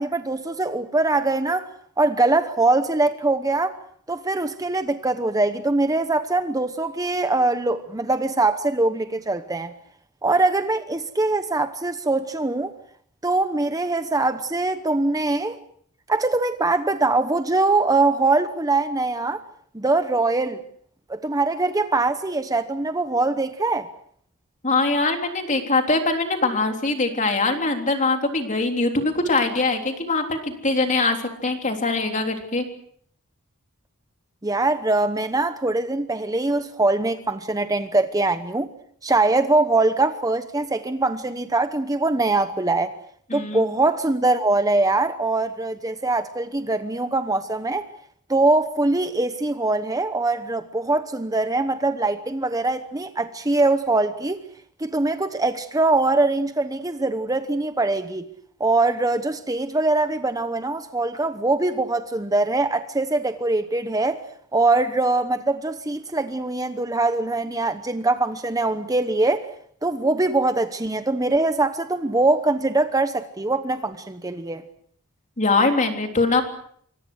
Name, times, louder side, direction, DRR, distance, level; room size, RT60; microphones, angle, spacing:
voice 1, 0.0-1.7 2.0-3.8 4.1-9.7 10.2-12.7 13.2-15.6 16.1-19.4 19.7-20.6 21.1-23.9 34.4-38.7 39.0-42.9 43.3-47.9 48.3-54.4 54.8-58.3 58.6-64.2 64.5-69.5 69.8-74.6, right 2 dB, 15° right, 0.9 m, -22 dB
voice 2, 24.6-31.2 31.4-32.7 43.3-43.6 75.4-76.4, left 3 dB, 35° left, 3.6 m, -22 dB
27.0 x 24.5 x 6.3 m
head